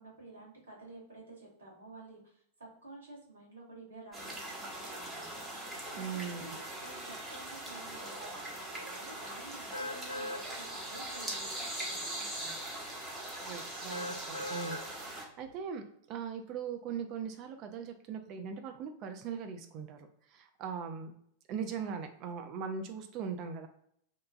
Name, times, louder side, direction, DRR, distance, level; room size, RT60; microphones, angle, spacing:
voice 1, 0.0-5.2 5.9-12.6 21.8-22.1, right 2 dB, 70° right, -4 dB, 1.3 m, -52 dB
sound 1, 4.1-15.3, right 1 dB, 15° right, 0.8 m, -41 dB
voice 2, 6.0-6.4 13.4-21.1 21.5-23.7, right 6 dB, 40° right, 6 dB, 0.3 m, -40 dB
sound 2, 9.7-10.4 11.0-11.1 13.9-14.8 15.4-15.5, left 1 dB, 80° left, 0.4 m, -39 dB
2.9 x 2.2 x 2.4 m, 0.69 s
figure-of-eight pair, 90°, 0 cm